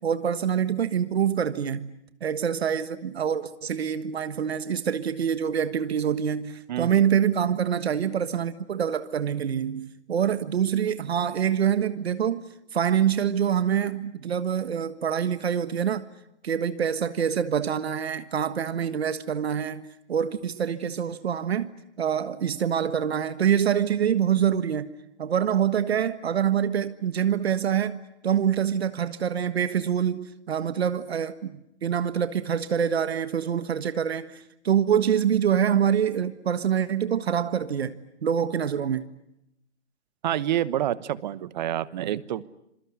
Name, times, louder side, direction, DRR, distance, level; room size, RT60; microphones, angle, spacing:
voice 1, 0.0-1.9 2.2-12.4 12.7-16.1 16.4-19.8 20.1-21.7 22.0-24.9 25.2-28.0 28.2-39.1, right 8 dB, 65° right, 1.5 m, -25 dB
voice 2, 6.7-7.0 40.2-42.4, right 12 dB, 40° right, 1.1 m, -28 dB
26.5 x 23.5 x 9.5 m
hypercardioid pair, 145°, 34 cm